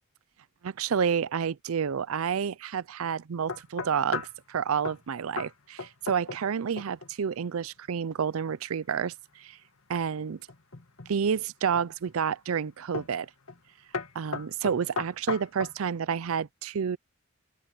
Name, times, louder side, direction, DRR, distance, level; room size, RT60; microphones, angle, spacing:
voice 1, 0.6-9.6 9.9-10.4 11.1-13.3 14.2-17.0, right 7 dB, 70° right, 0.5 m, -29 dB
sound 1, 3.5-4.4 4.8-5.1 5.4-5.5 5.8-6.5 6.8-7.1 10.5-11.1 11.7-12.2 12.9-13.2 13.5-13.7 13.9-15.8, left 4 dB, 70° left, 2.3 m, -36 dB
open air
head